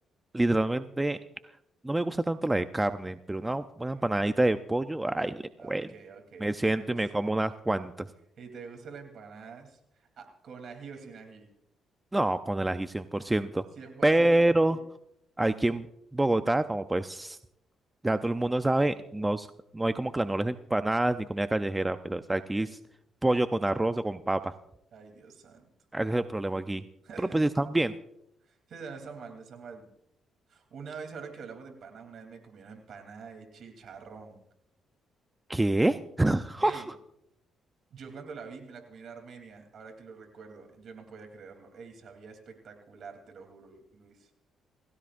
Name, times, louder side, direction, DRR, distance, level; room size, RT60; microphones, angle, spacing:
voice 1, 0.3-1.2 1.8-5.9 6.4-8.1 12.1-13.6 14.0-14.8 15.4-15.9 16.1-17.4 18.0-19.5 19.7-22.8 23.2-24.5 25.9-26.8 27.2-27.9 35.5-36.8, right 1 dB, 15° right, 10 dB, 0.6 m, -27 dB
voice 2, 5.6-7.0 8.4-11.5 13.8-14.8 24.9-25.7 27.0-27.5 28.4-29.9 30.5-34.4 36.6-36.9 37.9-44.3, right 5 dB, 60° right, 4 dB, 3.2 m, -46 dB
27.5 x 16.0 x 2.6 m, 0.77 s
cardioid pair, 90°, 0 cm